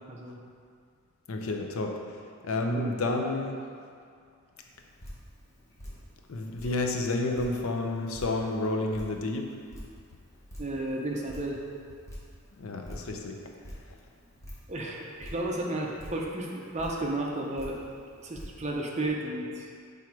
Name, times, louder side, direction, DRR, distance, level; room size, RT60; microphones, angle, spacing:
voice 1, 0.1-0.4 2.7-2.9 10.6-11.6 14.7-17.8 18.2-19.7, right 1 dB, 30° right, -1 dB, 0.7 m, -33 dB
voice 2, 1.3-2.0 2.4-3.6 6.3-9.5 12.6-13.4, left 2 dB, 75° left, 2 dB, 0.6 m, -30 dB
Drip, 4.6-19.1, equal, 15° left, 1.0 m, -48 dB
6.0 x 3.6 x 4.6 m, 2.2 s
head